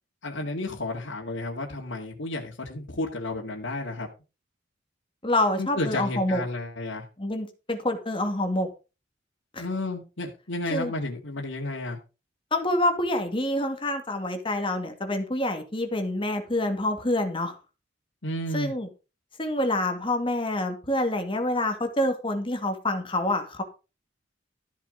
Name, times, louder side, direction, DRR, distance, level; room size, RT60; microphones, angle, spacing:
voice 1, 0.2-4.1 5.6-7.0 9.6-12.0 18.2-18.7, left 2 dB, 85° left, -3 dB, 2.2 m, -32 dB
voice 2, 5.2-6.4 7.2-8.7 9.5-9.6 10.7-10.9 12.5-17.6 18.5-18.9 19.4-23.6, left 1 dB, 25° left, 6 dB, 2.3 m, -27 dB
14.0 x 7.3 x 5.2 m, 0.31 s
head